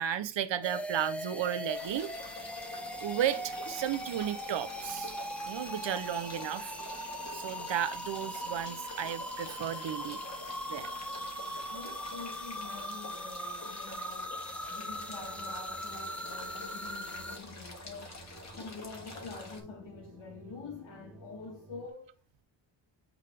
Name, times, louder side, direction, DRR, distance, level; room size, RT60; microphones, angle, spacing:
voice 1, 0.0-2.1 3.0-5.2 5.4-6.8 7.3-10.2 10.7-10.9, right 10 dB, 65° right, 0.8 m, -34 dB
sound 1, 0.6-17.4, equal, 5° left, 0.6 m, -40 dB
sound 2, 1.7-19.6, left 2 dB, 35° left, 2.1 m, -47 dB
sound 3, 2.0-21.9, right 3 dB, 25° right, 1.3 m, -55 dB
voice 2, 11.7-18.2 18.5-22.1, left 4 dB, 65° left, 1.5 m, -46 dB
8.3 x 3.7 x 3.3 m
cardioid pair, 110°, 48 cm